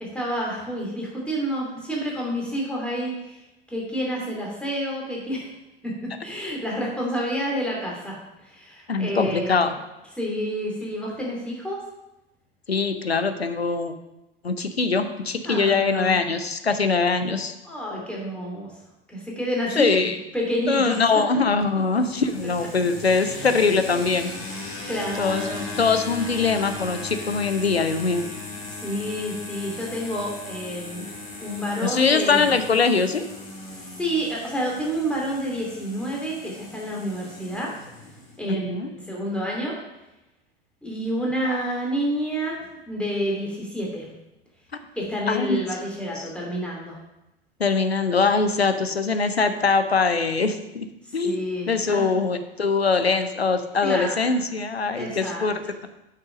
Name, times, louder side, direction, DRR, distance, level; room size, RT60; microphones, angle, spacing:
voice 1, 0.0-5.5 5.8-5.9 6.2-9.7 10.2-11.8 15.4-16.2 17.6-18.7 19.1-19.9 20.3-21.2 23.2-23.5 24.9-25.6 28.7-31.1 31.4-32.6 33.7-37.7 38.4-39.8 40.8-44.1 44.9-47.0 51.0-52.1 53.8-54.4 54.9-55.7, equal, 5° left, -3 dB, 2.8 m, -29 dB
voice 2, 8.9-9.7 12.7-13.9 14.4-17.5 19.8-20.1 20.7-24.3 25.2-25.4 25.8-28.3 31.8-33.3 38.5-38.9 41.5-41.6 45.3-45.6 47.6-50.9 51.1-55.5, left 4 dB, 85° left, 9 dB, 0.7 m, -22 dB
sound 1, 21.6-38.4, left 3 dB, 40° left, 3.0 m, -37 dB
8.0 x 5.7 x 5.1 m, 0.94 s
figure-of-eight pair, 80°, 31 cm